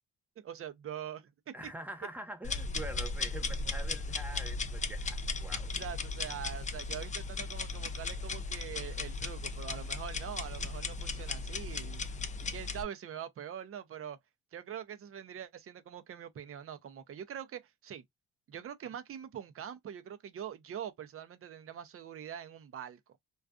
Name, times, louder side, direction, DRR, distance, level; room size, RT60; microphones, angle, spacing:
voice 1, 0.4-1.5 5.7-12.0 12.5-14.2 14.5-18.0 18.5-23.2, right 9 dB, 45° right, 0.6 m, -43 dB
voice 2, 1.5-5.7, right 1 dB, 5° right, 0.9 m, -44 dB
sound 1, 2.4-12.8, left 3 dB, 25° left, 0.4 m, -36 dB
2.4 x 2.3 x 2.3 m
cardioid pair, 90°, 30 cm